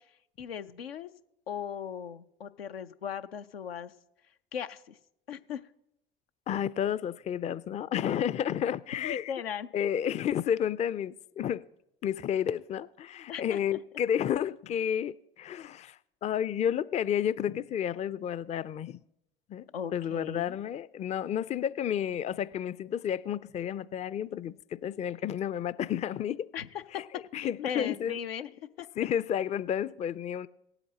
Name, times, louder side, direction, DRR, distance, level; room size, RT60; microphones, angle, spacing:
voice 1, 0.4-1.1 1.5-3.9 4.5-5.0 5.3-5.6 9.0-9.7 13.3-13.8 19.7-20.6 26.5-26.7 26.9-27.0 27.3-28.5 28.8-28.9, left 8 dB, 85° left, 0.5 m, -38 dB
voice 2, 6.5-9.3 9.7-11.7 12.0-19.0 19.5-19.7 19.9-26.5 26.9-27.0 27.3-28.2 29.0-30.5, left 9 dB, 25° left, 0.4 m, -31 dB
18.5 x 8.0 x 2.8 m
figure-of-eight pair, 60°, 29 cm